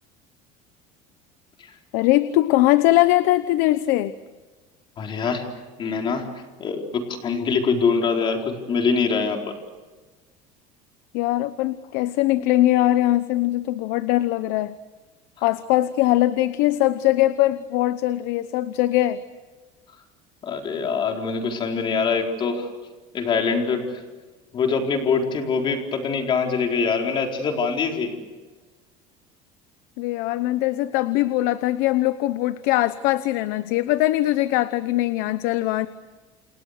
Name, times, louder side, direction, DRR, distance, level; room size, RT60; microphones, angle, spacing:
voice 1, 1.9-4.1 11.1-14.7 15.4-19.2 30.0-35.9, left 15 dB, 70° left, 13 dB, 1.0 m, -21 dB
voice 2, 5.0-5.5 5.8-6.3 6.6-9.6 20.4-22.7 23.1-24.0 24.5-28.2, left 5 dB, 30° left, 2 dB, 4.4 m, -24 dB
29.0 x 29.0 x 6.7 m, 1.3 s
cardioid pair, 160°, 16 cm